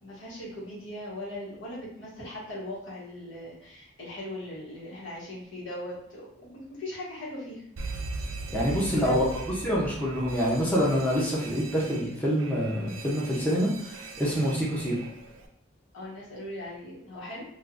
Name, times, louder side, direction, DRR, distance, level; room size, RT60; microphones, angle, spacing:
voice 1, 0.0-7.7 8.5-9.3 15.9-17.4, left 1 dB, 85° left, -7 dB, 1.3 m, -39 dB
Alarm, 7.8-15.5, right 3 dB, 85° right, 0.4 m, -40 dB
voice 2, 8.5-9.2 9.6-14.9, equal, 10° left, -6 dB, 0.5 m, -26 dB
3.4 x 2.5 x 2.4 m, 0.71 s
head